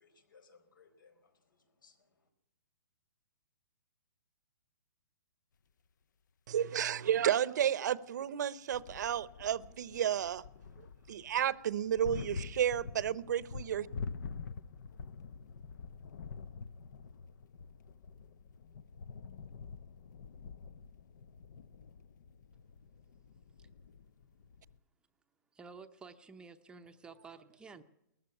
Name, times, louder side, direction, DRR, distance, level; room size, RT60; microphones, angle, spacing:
voice 1, 0.0-2.3, left 5 dB, 85° left, 4.5 m, -65 dB
voice 2, 6.5-10.4 11.1-13.9, right 10 dB, 60° right, 0.8 m, -32 dB
sound 1, 8.7-24.8, left 5 dB, 65° left, 0.8 m, -47 dB
voice 3, 25.5-27.8, right 4 dB, 10° right, 0.7 m, -52 dB
19.0 x 14.5 x 9.9 m
hypercardioid pair, 150°, 11 cm